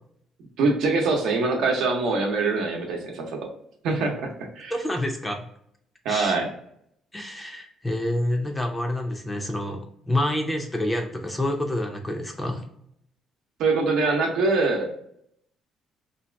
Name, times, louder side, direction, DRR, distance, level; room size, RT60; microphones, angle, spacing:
voice 1, 0.6-3.5 3.8-4.7 6.0-6.5 13.6-14.9, right 3 dB, 80° right, 2 dB, 0.8 m, -24 dB
voice 2, 4.7-5.4 6.1-6.4 7.1-12.6, left 1 dB, 10° left, 3 dB, 0.5 m, -28 dB
2.7 x 2.4 x 3.2 m, 0.70 s
cardioid pair, 135°, 0 cm